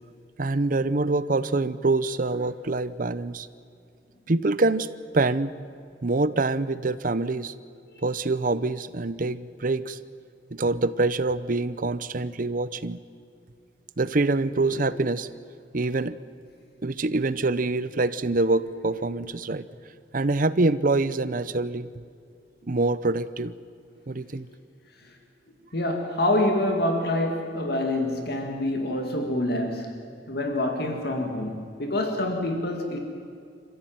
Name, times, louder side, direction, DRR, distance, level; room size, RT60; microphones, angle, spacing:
voice 1, 0.4-3.5 4.3-4.9 5.1-5.5 6.0-7.5 8.0-10.0 10.5-13.0 14.0-15.3 15.7-16.2 16.8-19.7 20.1-21.9 22.7-23.5 24.1-24.5, right 2 dB, 50° right, 15 dB, 0.7 m, -25 dB
voice 2, 25.7-33.0, left 1 dB, 60° left, 4 dB, 2.1 m, -27 dB
27.0 x 15.0 x 9.2 m, 2.4 s
head